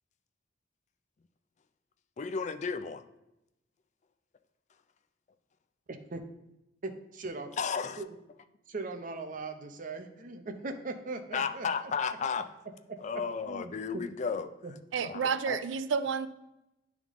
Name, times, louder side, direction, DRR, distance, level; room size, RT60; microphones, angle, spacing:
voice 1, 2.2-3.0 7.6-8.0 11.3-12.5 13.0-14.5 15.0-15.6, left 5 dB, 40° left, 11 dB, 0.4 m, -33 dB
voice 2, 5.9-6.2 6.8-7.5 8.0-8.1 8.7-11.9 13.5-14.0 14.6-14.7, right 3 dB, 45° right, 6 dB, 0.7 m, -39 dB
voice 3, 14.9-16.3, right 6 dB, 85° right, 13 dB, 0.4 m, -30 dB
10.5 x 3.6 x 3.6 m, 0.90 s
head